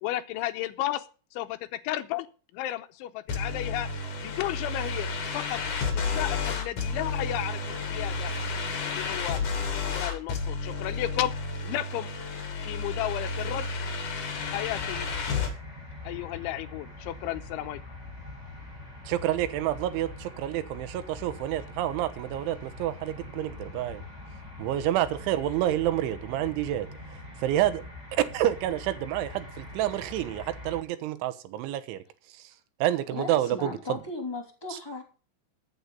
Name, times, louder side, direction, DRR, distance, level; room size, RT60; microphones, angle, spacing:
voice 1, 0.0-1.0 1.3-1.6 1.8-2.3 2.5-3.9 4.2-5.1 5.3-5.6 5.9-8.3 8.8-9.4 9.8-11.3 11.6-12.1 12.6-13.7 14.5-15.1 16.0-17.8, left 14 dB, 80° left, 3.0 m, -33 dB
sound 1, 3.3-15.5, left 4 dB, 45° left, 3.4 m, -31 dB
sound 2, 14.3-30.8, left 2 dB, 10° right, 3.9 m, -43 dB
voice 2, 19.1-24.0 24.6-26.9 27.4-27.8 28.3-32.0 32.4-32.5 32.8-34.0 34.7-34.8, right 13 dB, 75° right, 3.3 m, -28 dB
voice 3, 33.1-35.0, left 3 dB, 10° left, 1.4 m, -36 dB
14.5 x 8.1 x 5.4 m
omnidirectional pair, 5.7 m